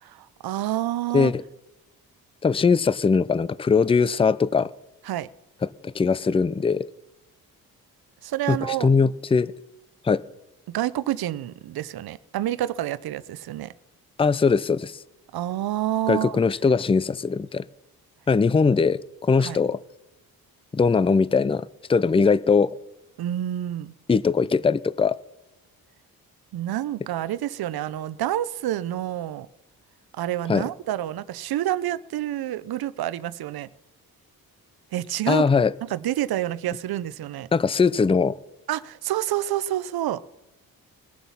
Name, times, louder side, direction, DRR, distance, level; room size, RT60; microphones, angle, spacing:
voice 1, 0.0-1.3 5.1-5.3 8.2-8.9 10.7-13.7 15.3-16.4 19.4-19.6 23.2-23.9 26.5-29.5 30.1-33.7 34.9-35.5 35.8-37.5 38.7-40.2, right 13 dB, 70° right, 17 dB, 0.8 m, -28 dB
voice 2, 2.4-4.7 5.8-6.9 8.5-9.5 10.0-10.2 14.2-14.9 16.1-17.6 18.3-19.8 20.7-22.7 24.1-25.2 30.5-30.6 35.3-35.7 37.5-38.4, left 5 dB, 15° left, 19 dB, 0.5 m, -21 dB
21.0 x 7.3 x 5.6 m, 0.96 s
cardioid pair, 70°, 38 cm